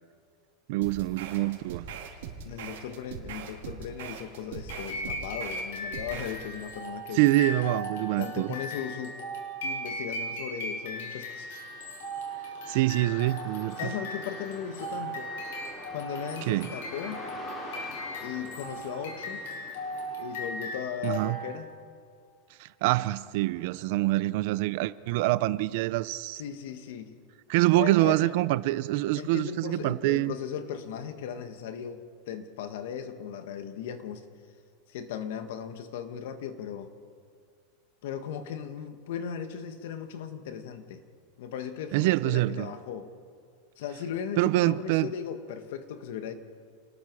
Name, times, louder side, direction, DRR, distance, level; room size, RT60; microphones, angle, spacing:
voice 1, 0.7-1.9 7.1-8.5 12.7-13.9 16.5-16.7 21.0-21.4 22.6-26.4 27.5-30.3 41.9-42.7 44.4-45.1, right 18 dB, 50° right, 0.5 m, -25 dB
sound 1, 0.8-6.4, right 7 dB, 70° right, 3.3 m, -41 dB
voice 2, 2.5-7.2 8.2-9.2 9.6-11.6 13.8-15.3 15.9-17.2 18.2-19.4 20.2-21.7 26.4-27.1 27.7-28.4 29.2-34.2 34.9-36.9 38.0-41.0 41.4-43.1 43.8-46.3, left 8 dB, 60° left, 1.7 m, -37 dB
sound 2, 4.7-21.7, equal, 80° left, 6.4 m, -38 dB
sound 3, 9.2-21.6, left 2 dB, 20° left, 2.6 m, -47 dB
29.0 x 20.0 x 4.8 m
supercardioid pair, 175°, 0 cm